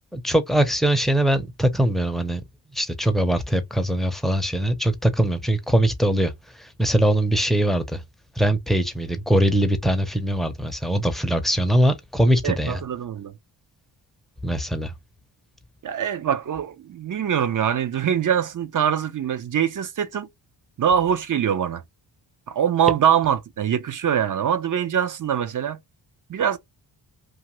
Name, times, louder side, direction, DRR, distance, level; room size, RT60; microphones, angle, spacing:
voice 1, 0.1-2.4 2.7-6.3 6.6-8.0 8.4-12.8 14.4-14.9, right 1 dB, ahead, 0.6 m, -22 dB
voice 2, 12.4-13.3 15.8-20.3 20.8-21.8 22.5-25.8 26.3-26.6, right 8 dB, 45° right, 0.5 m, -23 dB
2.5 x 2.5 x 3.0 m
cardioid pair, 65°, 46 cm